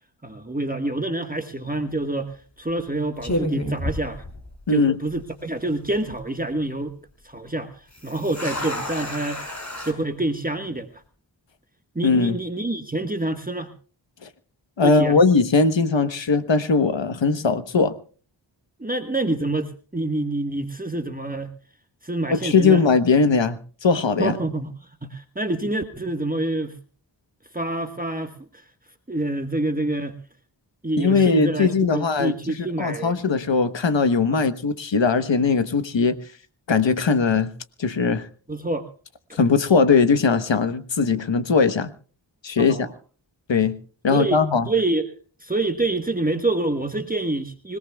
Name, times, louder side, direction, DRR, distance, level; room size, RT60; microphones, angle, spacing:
voice 1, 0.2-4.3 4.7-6.9 7.2-9.4 9.8-11.0 11.9-13.7 14.8-15.2 18.8-21.5 22.0-22.8 24.2-26.8 27.5-28.6 29.1-30.2 30.8-33.2 34.3-34.4 38.5-38.9 39.3-39.4 42.6-42.9 44.1-47.8, right 2 dB, 20° right, 6 dB, 1.4 m, -27 dB
sound 1, 1.7-2.0 2.7-2.9 3.2-4.8 5.1-5.2 5.8-6.2 7.9-9.9, left 1 dB, 40° left, 5.4 m, -30 dB
voice 2, 4.7-5.0 12.0-12.4 14.2-14.3 14.8-17.9 22.3-24.3 31.0-32.3 32.8-36.2 36.7-37.5 37.8-38.3 39.3-41.9 42.4-42.9 43.5-43.7 44.0-44.7, left 4 dB, 70° left, 11 dB, 1.3 m, -20 dB
26.0 x 18.0 x 2.3 m, 0.41 s
cardioid pair, 40°, 46 cm